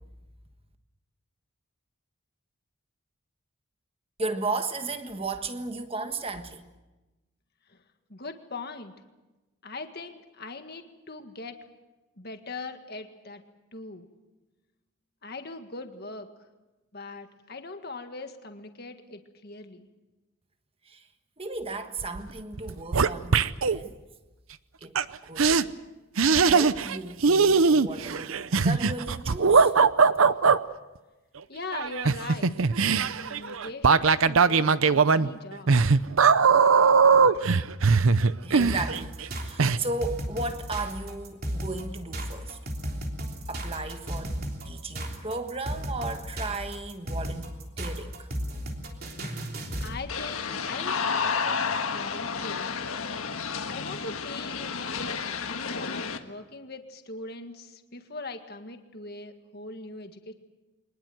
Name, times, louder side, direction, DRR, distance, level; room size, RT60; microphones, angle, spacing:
voice 1, 4.2-6.7 20.8-21.1 21.4-23.9 24.8-25.6 26.4-29.7 38.4-42.6 43.5-44.4 44.6-48.3, right 3 dB, 25° right, 1.4 m, -35 dB
voice 2, 8.1-8.9 9.6-11.6 12.1-13.4 13.7-14.1 15.2-16.3 16.9-19.9 31.5-32.5 33.2-35.8 49.8-51.6 51.9-52.8 53.7-60.3, left 3 dB, 45° left, 1.8 m, -41 dB
sound 1, 22.0-22.3 22.5-23.8 25.0-25.1 25.4-25.6 26.2-27.0 27.2-30.6 31.7-39.3 39.6-39.8, right 5 dB, 70° right, 0.7 m, -20 dB
sound 2, 38.6-50.0, equal, 45° right, 3.4 m, -34 dB
sound 3, 50.1-56.2, left 5 dB, 75° left, 1.5 m, -31 dB
24.0 x 20.5 x 7.8 m
head